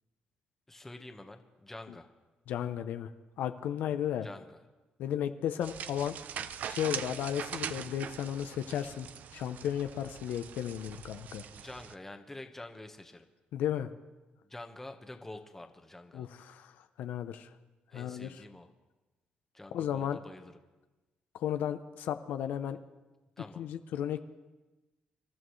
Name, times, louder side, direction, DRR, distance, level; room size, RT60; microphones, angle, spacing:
voice 1, 0.7-2.1 4.2-4.6 11.5-13.3 14.5-16.3 17.9-18.7 19.5-20.5 23.4-23.6, left 2 dB, 10° left, 5 dB, 1.2 m, -47 dB
voice 2, 2.5-3.1 3.4-4.3 5.0-6.2 6.6-11.4 13.5-13.9 16.1-16.7 17.0-17.5 17.9-18.4 19.7-20.2 21.4-22.8 23.6-24.2, left 10 dB, 80° left, 9 dB, 0.7 m, -34 dB
sound 1, 5.6-11.9, right 8 dB, 65° right, 0.5 m, -42 dB
26.5 x 12.5 x 3.2 m, 1.1 s
cardioid pair, 105°, 3 cm